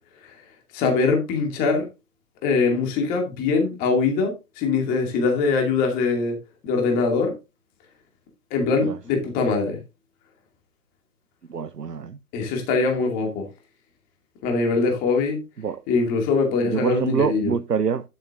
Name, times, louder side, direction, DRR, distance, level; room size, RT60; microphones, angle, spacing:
voice 1, 0.7-1.8 2.4-6.4 6.6-7.3 8.5-9.8 12.3-13.5 14.4-15.4 15.9-17.5, left 4 dB, 20° left, 2.3 m, -22 dB
voice 2, 11.5-12.2 15.6-15.8 16.6-18.0, right 6 dB, 90° right, 0.8 m, -25 dB
10.5 x 8.6 x 2.6 m
figure-of-eight pair, 135°, 46 cm